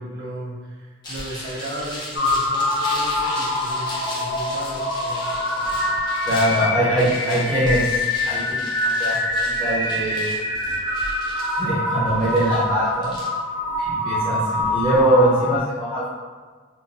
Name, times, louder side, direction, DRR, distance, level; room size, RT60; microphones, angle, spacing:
voice 1, 0.0-6.0 6.9-7.7, right 1 dB, 60° right, -7 dB, 0.7 m, -35 dB
sound 1, 1.0-15.0, left 1 dB, 20° left, 0.6 m, -36 dB
sound 2, 2.1-15.6, left 1 dB, 60° left, 0.7 m, -25 dB
voice 2, 6.2-7.9 8.2-10.2 11.6-13.2 13.8-16.1, right 1 dB, 5° right, -12 dB, 1.0 m, -22 dB
3.8 x 2.2 x 2.7 m, 1.5 s
head